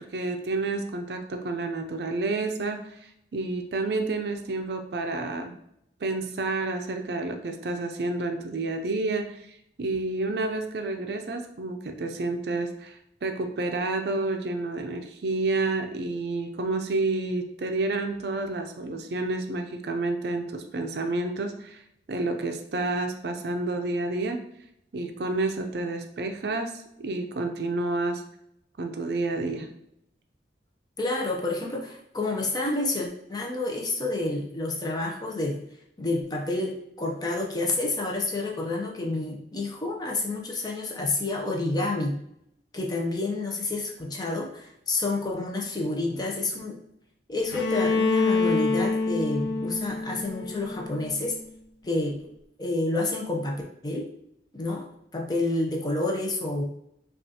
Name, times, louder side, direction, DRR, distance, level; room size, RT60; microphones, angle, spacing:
voice 1, 0.0-3.0 3.3-5.5 6.0-9.4 9.8-21.8 22.1-24.4 24.9-28.2 28.8-29.7, right 2 dB, 60° right, 5 dB, 0.4 m, -29 dB
voice 2, 31.0-35.6 36.0-42.2 42.7-46.8 47.3-51.4 51.8-52.3 52.6-54.1 54.5-56.6, left 2 dB, 20° left, 0 dB, 0.6 m, -29 dB
Bowed string instrument, 47.5-51.4, left 3 dB, 85° left, 0.6 m, -26 dB
5.4 x 2.4 x 2.8 m, 0.77 s
head